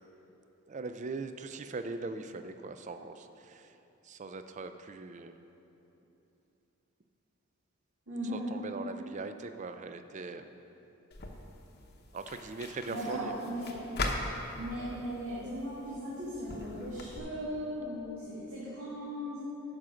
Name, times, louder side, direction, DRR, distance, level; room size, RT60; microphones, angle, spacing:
voice 1, 0.7-3.7 4.0-5.4 8.3-10.5 12.1-13.3, right 3 dB, 35° right, 9 dB, 0.4 m, -40 dB
voice 2, 8.1-8.5 12.9-13.7 14.6-19.4, equal, 75° right, -10 dB, 2.2 m, -37 dB
sound 1, 11.1-17.2, left 2 dB, 50° left, 0.9 m, -41 dB
9.8 x 5.8 x 6.2 m, 3.0 s
head